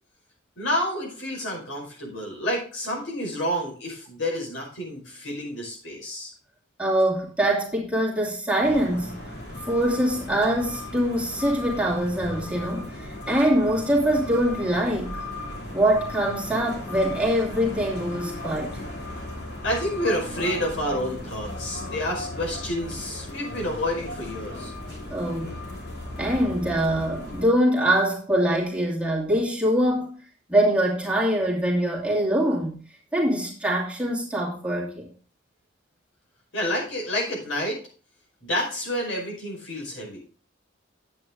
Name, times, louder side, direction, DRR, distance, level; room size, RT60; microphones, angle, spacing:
voice 1, 0.6-6.3 19.6-24.7 36.5-37.8 38.4-40.2, left 1 dB, 75° left, 5.3 m, -29 dB
voice 2, 6.8-9.3 9.7-15.2 15.7-18.8 25.1-25.6 26.2-30.2 30.5-32.8 33.1-35.1, right 1 dB, 5° right, 2.6 m, -24 dB
sound 1, 8.6-27.4, left 1 dB, 55° left, 2.9 m, -36 dB
9.9 x 8.6 x 3.9 m
head